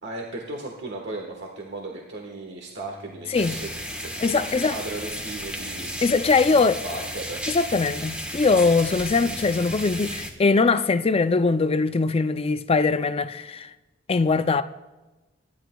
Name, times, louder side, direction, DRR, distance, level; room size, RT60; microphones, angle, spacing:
voice 1, 0.0-3.7 4.0-5.9 6.4-7.4, right 2 dB, 60° right, 1.3 m, -36 dB
sound 1, 2.6-8.2, equal, 30° right, 2.6 m, -52 dB
sound 2, 3.3-10.3, equal, 5° right, 1.2 m, -34 dB
voice 2, 4.2-4.8 6.0-6.8 7.5-13.7 14.1-14.6, left 4 dB, 30° left, 0.4 m, -21 dB
25.0 x 11.0 x 2.3 m
head